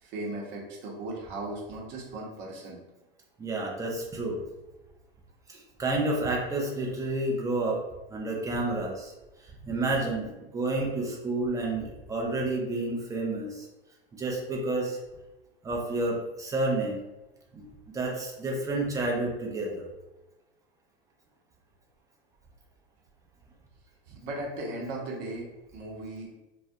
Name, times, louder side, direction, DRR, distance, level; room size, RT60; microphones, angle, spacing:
voice 1, 0.0-2.8 24.1-26.3, right 2 dB, 40° right, -1 dB, 0.8 m, -37 dB
voice 2, 3.4-4.4 5.5-7.8 8.1-9.1 9.6-13.7 14.1-15.0 15.6-17.0 17.5-17.7 17.9-19.9, right 2 dB, 10° right, -1 dB, 0.4 m, -30 dB
2.3 x 2.0 x 2.6 m, 1.0 s
hypercardioid pair, 100°, 30 cm